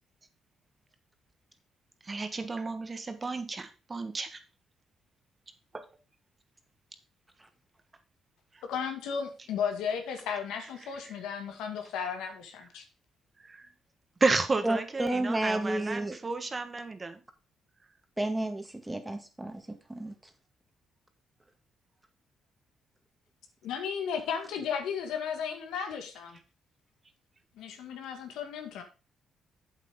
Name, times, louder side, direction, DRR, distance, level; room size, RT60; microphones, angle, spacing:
voice 1, 2.1-4.4 5.7-5.8 10.8-11.2 13.5-13.6 14.2-17.2, right 3 dB, 30° right, 8 dB, 1.5 m, -32 dB
voice 2, 8.6-12.9 23.6-26.4 27.6-28.8, left 7 dB, 90° left, 5 dB, 2.0 m, -34 dB
voice 3, 14.6-16.2 18.2-20.1, right 1 dB, 10° right, 6 dB, 1.9 m, -31 dB
8.1 x 7.9 x 3.7 m, 0.34 s
cardioid pair, 90°, 0 cm